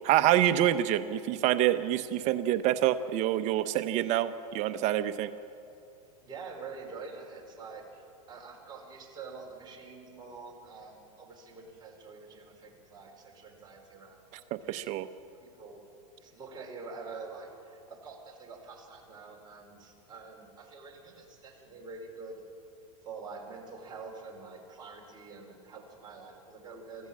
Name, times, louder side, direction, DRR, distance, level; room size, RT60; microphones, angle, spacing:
voice 1, 0.0-5.3 14.7-15.1, right 12 dB, 35° right, 12 dB, 0.7 m, -26 dB
voice 2, 6.2-14.5 15.4-15.8 16.2-22.4 23.0-27.1, right 4 dB, 20° right, -1 dB, 4.5 m, -46 dB
23.5 x 15.0 x 7.5 m, 2.6 s
supercardioid pair, 135°, 20 cm